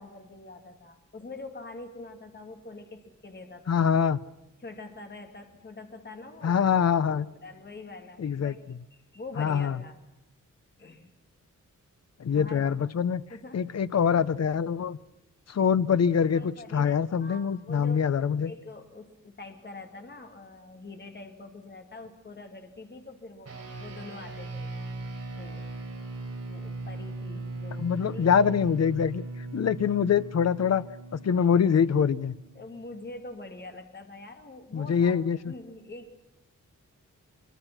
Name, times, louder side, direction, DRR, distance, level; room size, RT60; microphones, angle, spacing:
voice 1, 0.0-3.8 4.6-6.6 7.2-8.6 8.9-10.0 10.8-11.1 12.3-12.7 13.3-13.6 16.3-18.1 18.4-23.5 23.8-24.8 25.4-25.7 26.5-28.5 32.5-36.2, left 2 dB, 35° left, 5 dB, 2.3 m, -44 dB
voice 2, 3.7-4.2 6.4-7.2 8.2-8.5 9.4-9.8 12.2-13.2 13.5-15.0 15.5-18.5 27.8-29.2 29.5-30.9 31.1-32.3 34.7-35.4, left 7 dB, 55° left, 15 dB, 0.7 m, -24 dB
sound 1, 23.4-33.1, right 2 dB, 50° right, 3.8 m, -39 dB
24.5 x 23.0 x 6.0 m, 0.93 s
wide cardioid pair, 150°, 32 cm